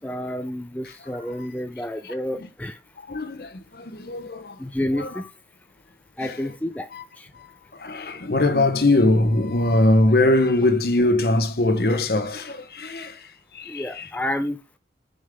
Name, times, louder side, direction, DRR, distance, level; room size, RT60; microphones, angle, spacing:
voice 1, 0.0-2.8 4.6-5.3 6.2-6.9 7.2-7.3 13.7-14.6, left 1 dB, 10° left, 0.4 m, -29 dB
voice 2, 3.1-4.5 4.9-5.1 6.2-6.4 6.9-7.0 7.8-13.2 13.5-14.1, left 2 dB, 60° left, 0.9 m, -21 dB
6.6 x 5.4 x 3.5 m
head